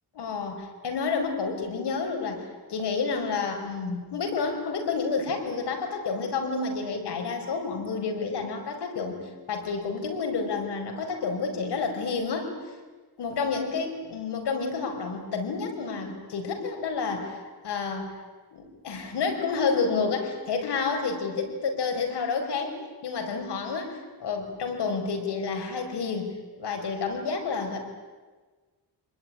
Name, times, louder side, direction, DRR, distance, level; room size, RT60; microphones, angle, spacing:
voice 1, 0.1-2.4 2.7-9.2 9.5-12.5 13.2-17.4 17.6-18.1 18.5-26.3 26.6-27.8, left 4 dB, 75° left, 4 dB, 5.1 m, -29 dB
26.0 x 20.5 x 9.9 m, 1.4 s
cardioid pair, 110°, 41 cm